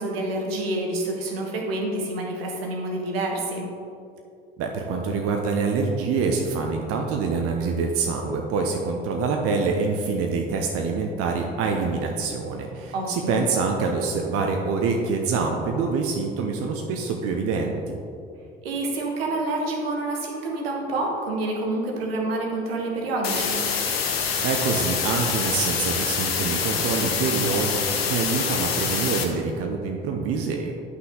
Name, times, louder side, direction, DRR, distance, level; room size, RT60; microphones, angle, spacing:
voice 1, 0.0-3.7 12.9-13.4 18.6-23.7, right 2 dB, 75° right, 0 dB, 1.2 m, -28 dB
voice 2, 4.6-18.0 24.4-30.8, right 4 dB, 50° right, 2 dB, 0.8 m, -26 dB
sound 1, 23.2-29.2, left 6 dB, 80° left, 0.8 m, -26 dB
9.6 x 5.7 x 3.8 m, 2.5 s
figure-of-eight pair, 55°, 30 cm